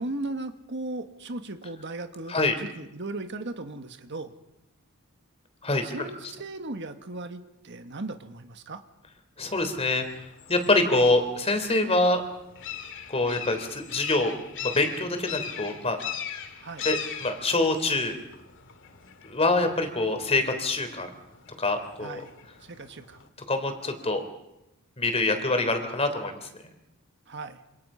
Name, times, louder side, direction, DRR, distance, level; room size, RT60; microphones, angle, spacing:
voice 1, 0.0-4.3 5.8-8.8 16.6-16.9 22.0-22.3 22.6-23.2 27.3-27.6, right 2 dB, 55° right, 7 dB, 1.6 m, -37 dB
voice 2, 5.6-6.1 9.4-10.1 10.5-12.2 13.1-14.3 14.6-16.0 16.8-18.2 19.2-21.1 21.6-22.2 23.5-24.2 25.0-26.5, left 2 dB, 30° left, 7 dB, 3.5 m, -25 dB
sound 1, 9.5-23.3, left 9 dB, 60° left, 2.1 m, -41 dB
28.0 x 27.0 x 5.7 m, 0.90 s
head